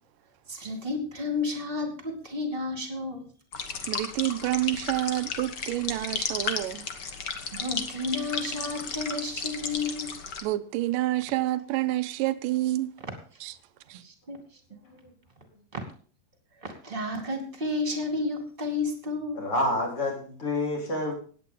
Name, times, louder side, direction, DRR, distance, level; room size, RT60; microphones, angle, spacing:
voice 1, 0.5-3.2 7.5-10.1 14.0-14.4 15.7-15.8 16.6-19.4, left 3 dB, 15° right, 2.6 m, -31 dB
sound 1, 3.5-10.4, left 5 dB, 65° left, 1.0 m, -34 dB
voice 2, 3.9-6.9 10.4-12.9 13.4-13.5 13.9-14.0, right 16 dB, 80° right, 2.3 m, -28 dB
voice 3, 14.7-15.1 19.3-21.1, left 1 dB, 40° left, 4.9 m, -29 dB
17.0 x 9.7 x 3.8 m
omnidirectional pair, 4.1 m